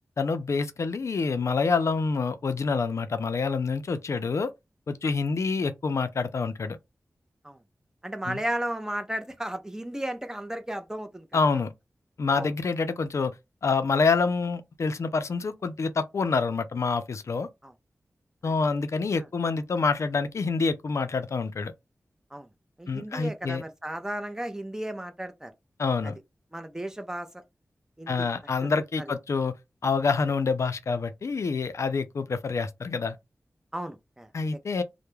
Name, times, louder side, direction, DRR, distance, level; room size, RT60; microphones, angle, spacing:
voice 1, 0.2-4.5 4.9-6.8 8.3-8.4 11.3-11.7 12.2-13.3 13.6-17.5 18.4-21.7 22.9-23.6 25.8-26.2 28.1-29.6 29.8-33.2 34.3-34.8, left 4 dB, 60° left, 0.4 m, -27 dB
voice 2, 8.0-11.3 12.3-12.5 17.6-17.7 18.4-18.5 19.2-19.3 22.3-22.5 22.8-25.5 26.0-26.1 26.5-27.4 28.0-28.3 28.6-28.7 29.0-29.1 33.7-34.3, right 1 dB, 10° right, 0.5 m, -34 dB
2.2 x 2.0 x 3.0 m
wide cardioid pair, 80°, 6 cm